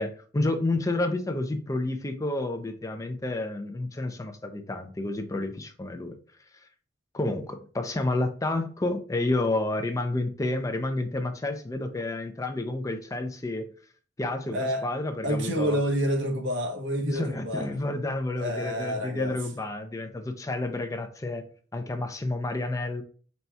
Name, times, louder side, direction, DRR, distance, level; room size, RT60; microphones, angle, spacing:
voice 1, 0.0-6.2 7.1-13.7 14.2-15.8 17.0-21.5 21.7-23.0, left 2 dB, 15° left, 0.4 m, -30 dB
voice 2, 14.5-14.9 15.2-17.7 18.4-19.4, equal, 75° right, 0.9 m, -28 dB
4.0 x 2.3 x 4.3 m
head